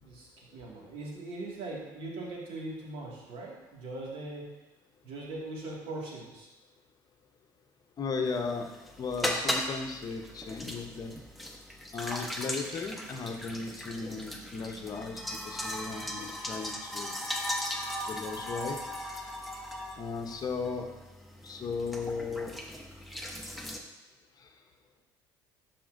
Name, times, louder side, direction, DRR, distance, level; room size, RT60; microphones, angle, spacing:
voice 1, 0.0-4.6 5.0-6.5, right 2 dB, 65° right, -3 dB, 2.0 m, -40 dB
voice 2, 8.0-8.7 9.0-11.2 11.9-17.2 18.0-18.8 20.0-20.9 21.4-22.5 24.4-24.5, left 4 dB, 40° left, 4 dB, 0.8 m, -36 dB
sound 1, 8.3-23.8, equal, ahead, 0.9 m, -38 dB
11.5 x 4.3 x 2.6 m, 1.1 s
supercardioid pair, 80°, 10 cm